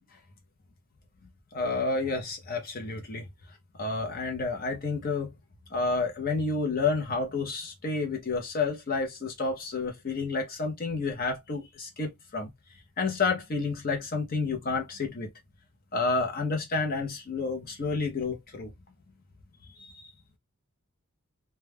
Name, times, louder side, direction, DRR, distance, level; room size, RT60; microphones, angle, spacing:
voice 1, 1.5-3.2 3.8-5.3 5.7-12.5 13.0-15.3 15.9-18.7 19.8-20.1, left 3 dB, 40° left, 0.6 m, -30 dB
2.2 x 2.2 x 3.3 m
head